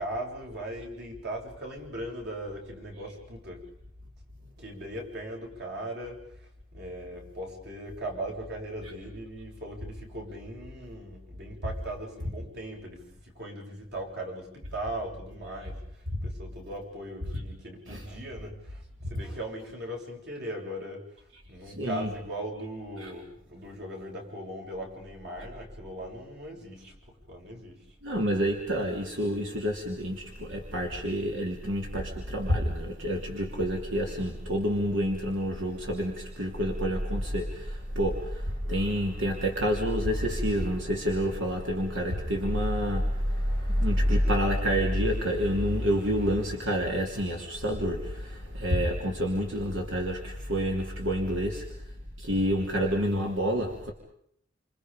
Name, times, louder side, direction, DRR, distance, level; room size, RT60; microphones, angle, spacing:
voice 1, 0.0-3.7 4.6-6.2 6.7-15.8 16.2-18.8 19.1-21.1 21.5-26.9 27.3-27.8, right 1 dB, 60° right, 0 dB, 7.7 m, -39 dB
voice 2, 21.7-22.1 23.0-23.1 28.0-51.7 52.2-53.9, equal, 85° right, 1 dB, 3.3 m, -28 dB
29.5 x 28.0 x 5.3 m, 0.69 s
head